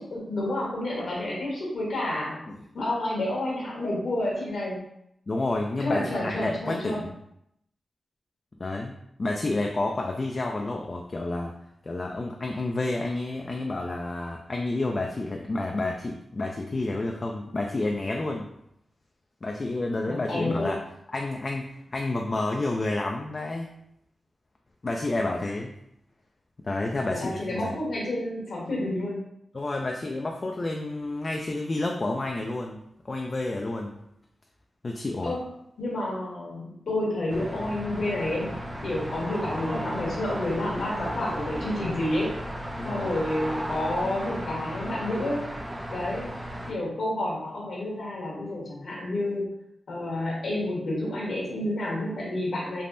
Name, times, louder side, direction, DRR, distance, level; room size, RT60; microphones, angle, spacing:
voice 1, 0.0-2.4 2.7-4.8 5.8-7.0 20.1-20.7 27.0-29.2 35.2-35.4 35.8-38.6 38.8-42.4 42.8-45.4 45.9-46.3 46.7-49.5 49.9-52.8, left 1 dB, 75° left, -4 dB, 1.0 m, -29 dB
voice 2, 5.3-7.1 8.6-11.6 11.8-18.5 19.4-20.8 21.1-23.7 24.8-25.7 26.6-27.8 29.5-34.0 34.8-35.3 42.8-43.1, left 2 dB, 45° left, 1 dB, 0.3 m, -30 dB
sound 1, 37.3-46.7, equal, 25° right, 0.4 m, -35 dB
3.3 x 2.1 x 2.5 m, 0.77 s
cardioid pair, 55°, 0 cm